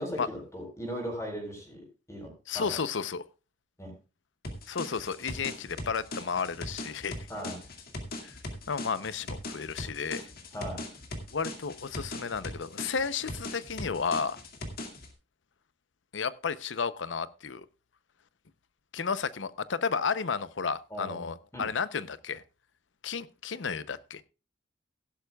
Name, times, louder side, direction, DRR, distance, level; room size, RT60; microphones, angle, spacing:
voice 1, 0.0-1.8 2.1-2.8 3.8-3.9 7.3-7.5 10.5-10.8 20.9-21.7, equal, 15° left, 4.2 m, -38 dB
voice 2, 2.5-3.2 4.7-7.3 8.2-8.4 8.7-10.3 11.3-14.4 16.1-17.7 18.9-22.4 23.0-24.2, left 5 dB, 90° left, 0.7 m, -32 dB
sound 1, 4.4-15.1, left 2 dB, 55° left, 2.2 m, -40 dB
16.5 x 11.5 x 2.3 m
head